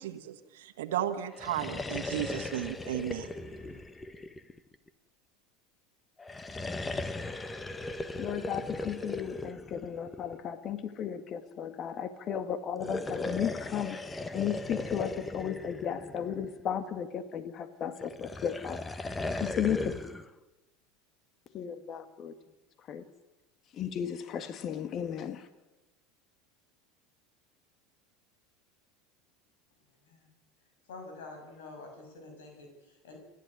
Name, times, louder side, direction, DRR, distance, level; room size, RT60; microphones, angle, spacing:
voice 1, 0.0-3.3, right 11 dB, 75° right, 6 dB, 1.5 m, -34 dB
sound 1, 1.3-4.9 6.2-10.5 12.7-16.7 18.0-20.3, left 2 dB, 15° left, 1.4 m, -38 dB
voice 2, 8.2-20.0 21.5-22.3 22.9-23.0 23.7-25.5, left 8 dB, 45° left, 10 dB, 1.9 m, -35 dB
voice 3, 30.9-33.2, left 3 dB, 75° left, 3 dB, 6.4 m, -47 dB
29.5 x 11.0 x 9.7 m, 1.1 s
hypercardioid pair, 85°, 0 cm